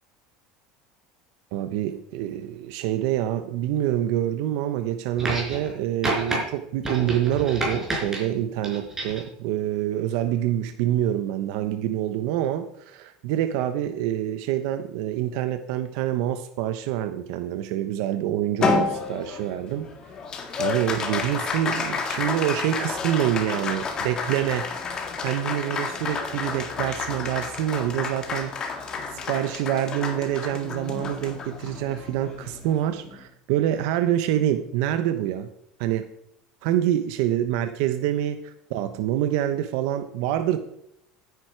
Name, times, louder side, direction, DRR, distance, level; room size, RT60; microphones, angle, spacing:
voice 1, 1.5-19.9 20.6-24.7 25.2-28.5 29.1-35.5 35.8-36.1 36.6-38.4 38.7-40.6, right 12 dB, 70° right, 9 dB, 1.0 m, -26 dB
sound 1, 5.2-5.7 6.0-6.4 6.8-8.2 8.6-9.3 10.3-10.4, right 2 dB, 15° right, 5.1 m, -29 dB
Applause, 18.6-33.3, left 5 dB, 30° left, 1.9 m, -30 dB
15.0 x 9.7 x 4.7 m, 0.74 s
cardioid pair, 145°, 2 cm